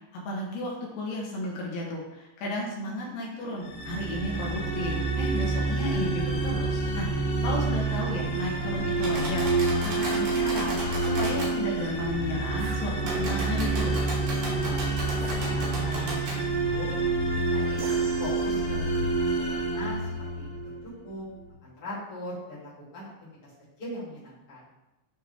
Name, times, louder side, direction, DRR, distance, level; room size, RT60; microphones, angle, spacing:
voice 1, 0.3-9.5 9.8-13.9, left 1 dB, 75° left, -2 dB, 2.9 m, -33 dB
sound 1, 3.6-20.8, right 3 dB, 60° left, 2.7 m, -28 dB
sound 2, 9.0-11.5 13.0-16.4, right 1 dB, 60° right, 2.2 m, -36 dB
sound 3, 10.0-10.3 12.6-13.4 15.2-16.0 17.8-18.9, right 4 dB, 80° right, 3.4 m, -43 dB
voice 2, 14.5-14.8 15.4-16.9 17.4-17.8 18.2-20.1 20.4-20.7 21.0-21.3 21.6-23.1 23.4-23.5 23.8-24.7, left 1 dB, 40° left, -9 dB, 2.2 m, -40 dB
9.2 x 3.3 x 3.3 m, 0.98 s
omnidirectional pair, 5.4 m